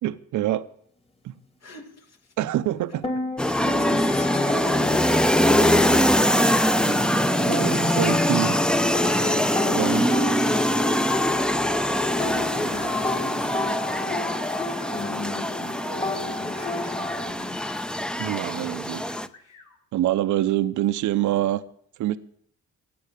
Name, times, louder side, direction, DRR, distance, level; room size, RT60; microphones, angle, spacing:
voice 1, 0.0-0.7 1.2-1.3 2.4-3.1 6.9-7.0 7.5-8.6 9.6-10.1 18.2-19.0 19.9-21.6 22.0-22.2, right 14 dB, 75° right, 0.8 m, -25 dB
voice 2, 1.6-2.3 3.4-6.2 9.3-11.0 11.9-17.7, left 4 dB, 60° left, 3.0 m, -41 dB
sound 1, 2.9-17.3, left 2 dB, 20° left, 2.2 m, -31 dB
sound 2, 3.4-19.3, equal, 5° left, 0.7 m, -23 dB
sound 3, 14.3-15.2 16.8-17.8 19.0-19.8, left 4 dB, 75° left, 4.4 m, -50 dB
15.5 x 8.7 x 9.8 m
cardioid pair, 90°, 30 cm